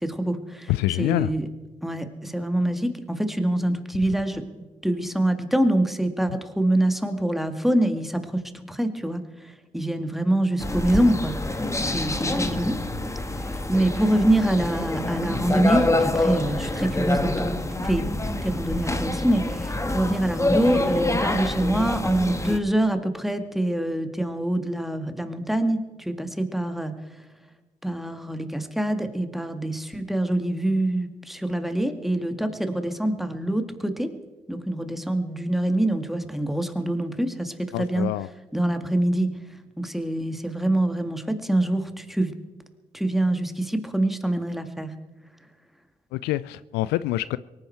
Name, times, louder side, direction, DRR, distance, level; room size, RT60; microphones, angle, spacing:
voice 1, 0.0-0.7 1.0-1.5 1.8-4.4 4.8-12.8 13.4-17.6 17.8-18.1 18.4-26.9 27.8-34.1 34.5-38.1 38.5-39.3 39.8-42.3 42.9-44.9, right 1 dB, ahead, 2.0 m, -25 dB
voice 2, 0.7-1.3 6.3-6.4 37.7-38.3 46.1-47.4, left 16 dB, 75° left, 0.4 m, -26 dB
sound 1, 10.6-22.6, left 2 dB, 15° left, 1.5 m, -26 dB
23.5 x 10.5 x 4.5 m
hypercardioid pair, 40°, 17 cm